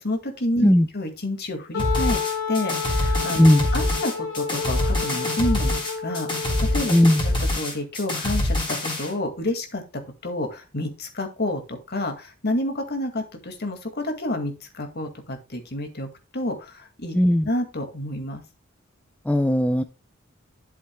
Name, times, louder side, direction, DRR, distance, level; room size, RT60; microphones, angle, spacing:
voice 1, 0.0-2.2 2.5-3.4 3.7-6.9 7.2-9.8 10.2-16.1 16.3-17.1 17.4-18.4, left 1 dB, 55° left, 2.1 m, -29 dB
Wind instrument woodwind instrument, 1.7-7.4, left 5 dB, 75° left, 2.1 m, -30 dB
sound 1, 1.8-9.1, left 1 dB, 25° left, 3.8 m, -25 dB
voice 2, 3.4-3.7 6.9-7.2 17.1-17.5 19.3-19.8, left 1 dB, 5° left, 0.4 m, -17 dB
11.5 x 7.3 x 2.2 m
head